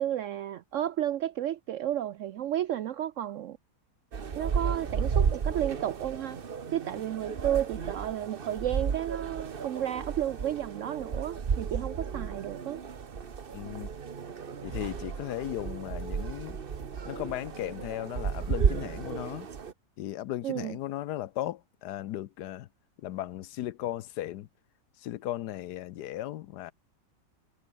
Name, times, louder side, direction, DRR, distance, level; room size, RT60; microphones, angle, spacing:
voice 1, 0.0-3.6 4.4-6.4 6.7-12.8 20.4-20.8, right 11 dB, 75° right, 0.7 m, -32 dB
sound 1, 4.1-19.7, right 6 dB, 35° right, 1.0 m, -33 dB
voice 2, 13.5-13.9 14.6-16.6 17.0-19.5 20.0-22.7 23.0-24.5 25.0-26.7, left 13 dB, 70° left, 1.2 m, -36 dB
omnidirectional pair, 2.0 m